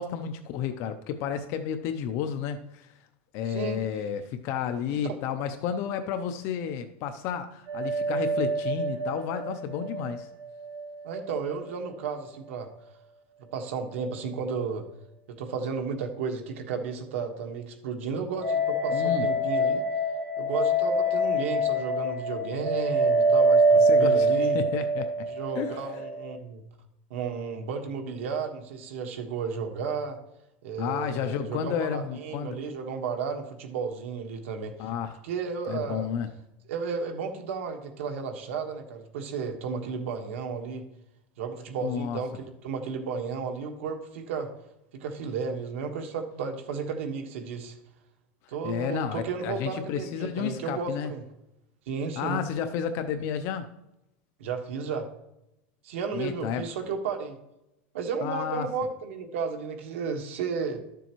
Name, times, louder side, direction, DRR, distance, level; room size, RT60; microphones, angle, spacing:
voice 1, 0.0-2.9 3.3-10.3 18.9-19.3 23.8-24.3 24.5-25.3 25.5-25.7 30.8-32.6 34.8-35.2 35.7-36.3 41.8-42.2 48.6-51.1 52.2-53.7 56.1-56.7 58.2-58.7, left 8 dB, 40° left, 9 dB, 0.5 m, -31 dB
voice 2, 3.4-3.8 4.9-5.2 11.0-12.7 13.5-14.9 15.3-19.8 20.3-24.6 25.3-26.6 27.1-30.2 30.6-34.9 35.2-36.1 36.7-40.8 41.4-44.5 44.9-47.7 48.5-51.2 51.9-52.4 54.4-55.1 55.8-57.4 57.9-60.8, right 5 dB, 85° right, 5 dB, 1.4 m, -33 dB
sound 1, 7.7-10.9 11.1-11.2 18.4-26.3, right 1 dB, 45° right, 2.9 m, -25 dB
12.5 x 6.8 x 3.0 m, 0.88 s
supercardioid pair, 165°, 7 cm